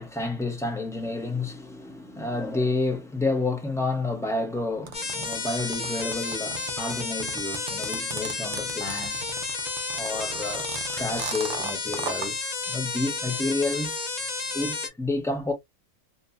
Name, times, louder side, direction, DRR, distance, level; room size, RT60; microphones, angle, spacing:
voice 1, 0.0-9.3 9.9-14.2 14.5-15.5, left 2 dB, 5° left, 0.6 m, -30 dB
sound 1, 4.9-14.9, left 4 dB, 40° left, 0.7 m, -32 dB
sound 2, 4.9-12.3, right 6 dB, 50° right, 0.5 m, -36 dB
2.6 x 2.5 x 2.2 m
omnidirectional pair, 1.3 m